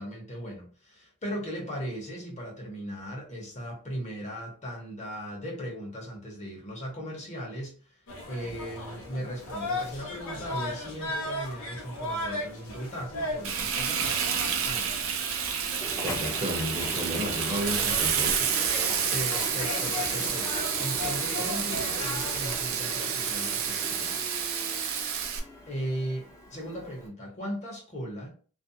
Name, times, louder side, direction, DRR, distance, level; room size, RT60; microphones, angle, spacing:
voice 1, 0.0-7.8 8.3-14.9 19.1-24.3 25.7-28.3, equal, 35° left, -2 dB, 0.9 m, -37 dB
sound 1, 8.1-22.7, left 1 dB, 75° left, 0.9 m, -37 dB
Frying (food), 13.4-25.4, right 7 dB, 65° right, 0.4 m, -29 dB
Printer, 15.8-27.1, left 1 dB, 15° left, 0.6 m, -41 dB
voice 2, 16.0-18.5, equal, 30° right, -2 dB, 0.7 m, -33 dB
2.5 x 2.1 x 2.6 m, 0.40 s
head